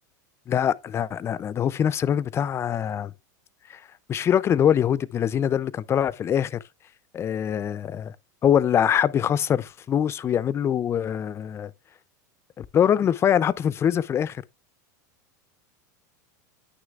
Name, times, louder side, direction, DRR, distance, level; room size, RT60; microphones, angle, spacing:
voice 1, 0.5-3.1 3.7-3.8 4.1-6.6 7.1-8.2 8.4-11.7 12.6-14.4, left 9 dB, 25° left, 0.4 m, -23 dB
9.5 x 6.4 x 2.4 m
supercardioid pair, 120°, 10 cm